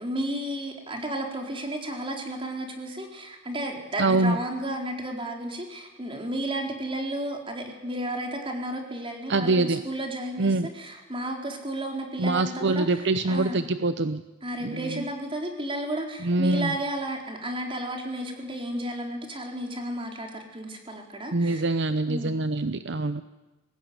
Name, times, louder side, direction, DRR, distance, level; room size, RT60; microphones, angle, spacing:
voice 1, 0.0-13.6 14.4-21.7 22.1-22.4, right 1 dB, 25° right, 2 dB, 4.2 m, -33 dB
voice 2, 4.0-4.4 9.3-9.8 10.4-10.7 12.2-14.2 14.6-15.1 16.2-16.7 21.3-23.2, right 2 dB, 60° right, 11 dB, 0.8 m, -24 dB
22.5 x 18.5 x 9.6 m, 1.1 s
head